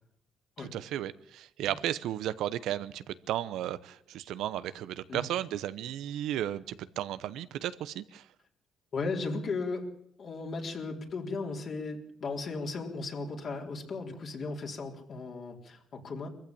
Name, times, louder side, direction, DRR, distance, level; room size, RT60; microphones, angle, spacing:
voice 1, 0.6-8.3, right 12 dB, 85° right, 15 dB, 0.9 m, -34 dB
voice 2, 8.9-9.9 10.2-16.3, left 3 dB, 55° left, 1 dB, 3.9 m, -36 dB
22.0 x 15.0 x 8.6 m, 0.72 s
cardioid pair, 90°, 0 cm